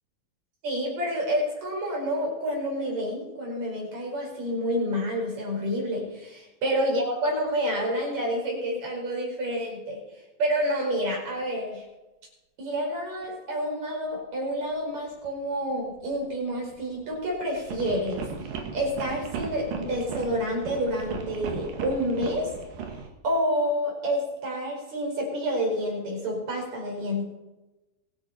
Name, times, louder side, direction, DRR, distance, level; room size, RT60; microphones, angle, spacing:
voice 1, 0.6-10.0 10.4-11.8 12.6-18.3 18.7-22.5 23.2-27.2, equal, 50° right, -1 dB, 6.1 m, -28 dB
sound 1, 13.2-13.3 15.1-15.3 15.7-16.2 16.6-23.1, right 5 dB, 70° right, 3.3 m, -37 dB
23.0 x 10.5 x 4.3 m, 1.0 s
omnidirectional pair, 4.3 m